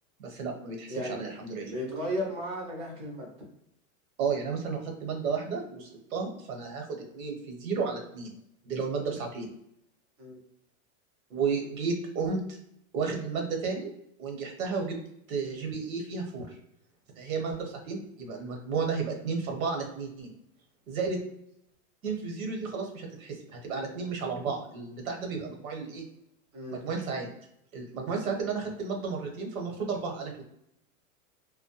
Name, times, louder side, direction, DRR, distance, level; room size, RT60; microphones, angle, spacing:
voice 1, 0.2-1.7 4.2-8.3 8.6-9.5 11.3-12.6 12.9-13.9 14.2-15.0 15.3-16.6 17.2-20.3 20.9-21.2 22.0-26.0 26.7-27.3 27.7-30.4, right 5 dB, 80° right, 2 dB, 1.0 m, -33 dB
voice 2, 0.9-3.3 10.2-10.4 26.5-26.8, equal, 15° right, -2 dB, 0.4 m, -35 dB
2.2 x 2.1 x 2.8 m, 0.77 s
supercardioid pair, 150°, 41 cm